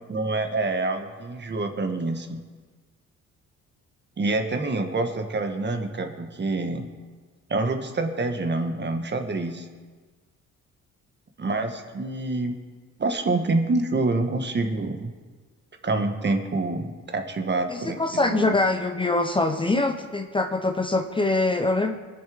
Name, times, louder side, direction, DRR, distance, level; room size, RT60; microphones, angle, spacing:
voice 1, 0.1-2.4 4.2-6.9 7.5-9.7 11.4-12.5 13.0-15.1 15.8-18.5, right 2 dB, 35° right, 5 dB, 1.6 m, -27 dB
voice 2, 17.7-22.0, left 2 dB, 15° left, 6 dB, 0.8 m, -24 dB
21.5 x 7.4 x 5.2 m, 1.4 s
cardioid pair, 90°, 30 cm